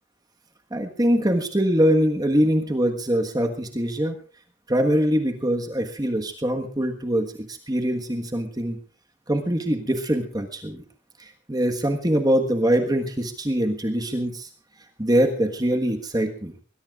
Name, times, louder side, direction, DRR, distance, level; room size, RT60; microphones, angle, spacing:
voice 1, 0.7-4.1 4.7-8.8 9.3-10.8 11.2-14.5 15.0-16.5, equal, 20° right, 4 dB, 1.4 m, -23 dB
21.5 x 20.5 x 2.5 m, 0.41 s
head